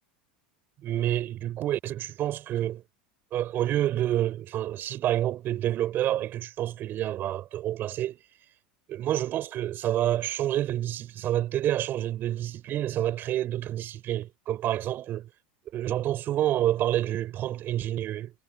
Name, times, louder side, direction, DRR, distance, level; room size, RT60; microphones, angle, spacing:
voice 1, 0.8-2.8 3.3-8.2 8.9-15.3 15.7-18.3, right 12 dB, 45° right, 6.2 m, -28 dB
hypercardioid pair, 95°, 5 cm